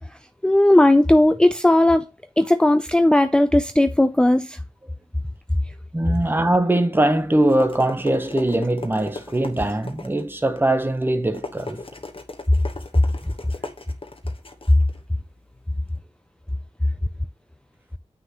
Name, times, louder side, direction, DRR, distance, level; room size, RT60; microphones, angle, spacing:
voice 1, 0.4-2.0 2.4-4.6, left 1 dB, 5° left, 0.5 m, -16 dB
voice 2, 5.9-11.8, right 1 dB, 15° right, 1.0 m, -21 dB
sound 1, 7.1-16.0, left 3 dB, 50° left, 1.2 m, -38 dB
7.6 x 6.1 x 3.0 m
wide cardioid pair, 55°, 12 cm